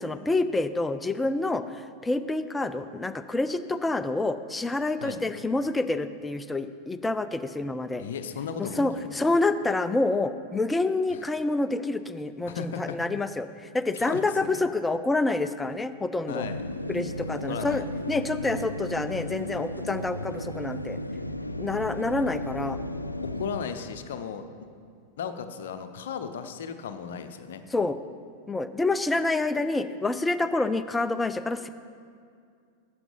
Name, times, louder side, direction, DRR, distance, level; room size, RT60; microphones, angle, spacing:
voice 1, 0.0-8.0 8.6-16.5 16.9-21.0 21.6-22.8 27.7-28.0 28.5-31.7, left 2 dB, 10° left, 11 dB, 0.5 m, -27 dB
voice 2, 8.0-9.1 11.1-11.2 12.5-13.0 13.9-14.6 16.3-16.6 17.5-17.9 23.2-24.5 25.2-27.6, left 7 dB, 60° left, 8 dB, 0.7 m, -35 dB
sound 1, 16.4-23.7, left 1 dB, 85° left, 0.4 m, -34 dB
12.0 x 7.9 x 5.3 m, 2.2 s
figure-of-eight pair, 90°, 0 cm